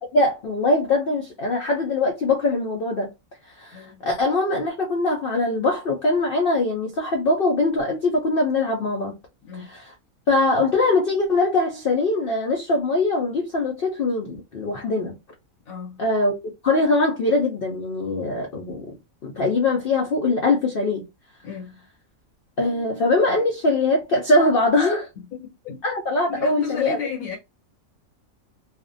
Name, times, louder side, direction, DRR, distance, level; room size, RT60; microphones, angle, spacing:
voice 1, 0.1-3.1 3.4-9.2 9.5-9.9 10.3-15.2 16.0-16.3 16.6-19.0 19.2-21.0 22.6-25.1 25.8-27.0, left 2 dB, 60° left, 0.6 m, -22 dB
voice 2, 3.7-4.1 9.4-9.7 15.7-16.0 21.4-21.8 25.3-25.8 26.3-27.4, left 6 dB, 80° left, 1.2 m, -34 dB
2.5 x 2.1 x 2.5 m
omnidirectional pair, 1.4 m